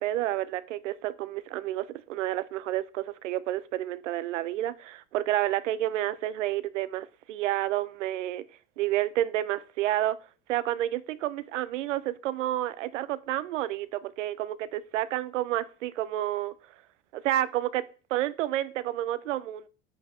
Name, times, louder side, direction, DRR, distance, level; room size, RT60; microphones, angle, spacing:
voice 1, 0.0-8.4 8.8-10.2 10.5-16.5 17.1-17.9 18.1-19.7, right 14 dB, 85° right, 0.6 m, -30 dB
8.5 x 8.0 x 3.1 m
hypercardioid pair, 85°, 36 cm